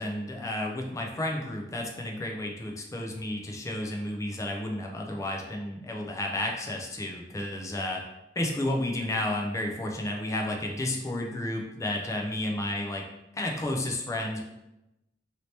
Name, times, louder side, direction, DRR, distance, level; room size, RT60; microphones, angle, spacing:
voice 1, 0.0-8.0 8.4-13.0 13.3-14.4, left 1 dB, 20° left, 1 dB, 0.4 m, -32 dB
2.8 x 2.8 x 3.2 m, 0.92 s
head